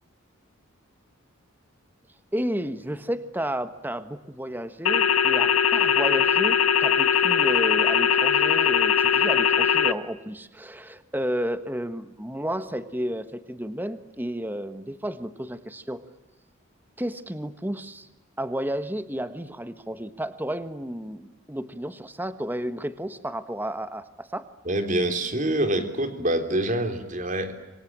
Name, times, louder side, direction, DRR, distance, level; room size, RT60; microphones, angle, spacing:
voice 1, 2.3-16.0 17.0-18.1 18.4-24.5, equal, 10° right, 11 dB, 1.4 m, -32 dB
sound 1, 4.9-9.9, left 7 dB, 90° left, 1.3 m, -20 dB
voice 2, 24.7-27.5, right 1 dB, 35° right, 7 dB, 3.7 m, -26 dB
27.5 x 24.5 x 8.8 m, 1.0 s
head